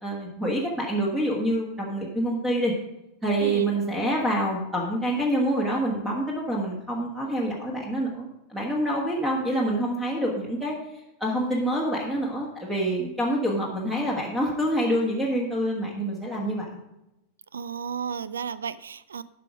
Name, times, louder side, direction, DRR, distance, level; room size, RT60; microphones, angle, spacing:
voice 1, 0.0-2.7 3.2-10.8 11.2-16.6, right 1 dB, 10° right, -2 dB, 1.5 m, -26 dB
voice 2, 3.4-3.7 17.5-19.2, right 7 dB, 70° right, 17 dB, 0.3 m, -33 dB
12.0 x 5.1 x 4.9 m, 0.91 s
figure-of-eight pair, 90°, 0 cm